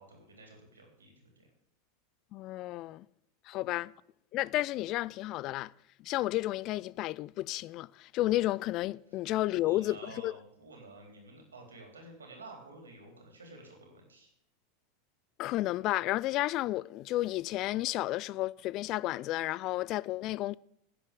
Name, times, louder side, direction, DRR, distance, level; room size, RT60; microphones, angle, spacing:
voice 1, 0.0-1.5 3.5-3.8 9.5-14.3, right 2 dB, 80° right, 3.8 m, -51 dB
voice 2, 2.3-3.1 3.5-3.9 4.3-5.7 6.0-10.3 15.4-20.6, left 16 dB, 45° left, 0.3 m, -32 dB
10.5 x 7.6 x 8.4 m
figure-of-eight pair, 85°, 0 cm